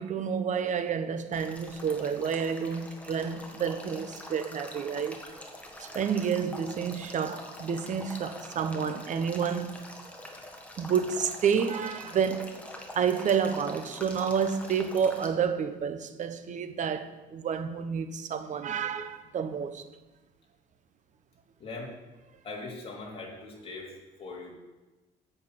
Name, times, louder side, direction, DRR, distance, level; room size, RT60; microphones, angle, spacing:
voice 1, 0.0-5.2 5.8-9.8 10.8-12.5 12.9-19.8, right 7 dB, 45° right, 1.0 m, -29 dB
Male speech man speaking / Stream / Trickle dribble, 1.3-15.3, left 1 dB, 10° left, 1.6 m, -44 dB
voice 2, 21.6-22.0 22.4-23.9 24.2-24.5, left 3 dB, 35° left, 3.1 m, -40 dB
8.9 x 6.5 x 7.8 m
cardioid pair, 110°, 17 cm